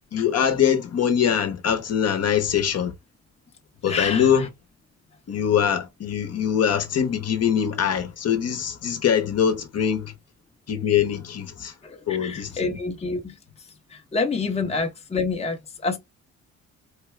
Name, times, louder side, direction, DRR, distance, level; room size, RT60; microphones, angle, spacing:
voice 1, 0.1-2.9 3.8-4.5 5.3-10.1 10.7-11.7 12.1-12.7, left 8 dB, 55° left, 1.0 m, -23 dB
voice 2, 3.8-4.5 11.8-16.0, left 4 dB, 20° left, 0.8 m, -28 dB
4.5 x 2.3 x 3.2 m
cardioid pair, 90°, 30 cm